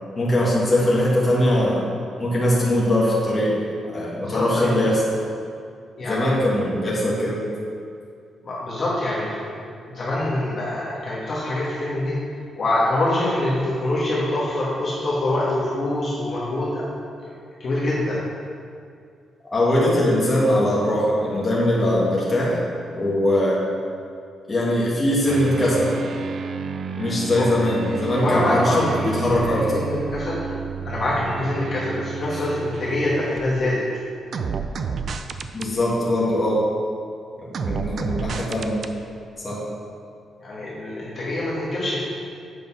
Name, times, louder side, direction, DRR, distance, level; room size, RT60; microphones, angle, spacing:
voice 1, 0.2-1.9 2.2-3.6 3.8-5.0 6.1-7.4 19.5-22.6 22.9-23.6 24.5-25.9 27.0-29.9 35.5-36.6 37.5-38.8 39.4-39.6, left 1 dB, 20° left, -7 dB, 1.8 m, -21 dB
voice 2, 4.2-4.7 6.0-6.4 8.4-9.6 9.9-12.1 12.6-16.8 17.6-18.2 27.4-27.5 28.1-30.4 30.8-33.8 40.4-42.0, left 1 dB, 35° left, -8 dB, 1.6 m, -25 dB
sound 1, 25.3-33.8 34.3-35.7 37.5-38.9, right 6 dB, 45° right, 0.4 m, -31 dB
8.0 x 5.3 x 5.6 m, 2.3 s
cardioid pair, 170°, 0 cm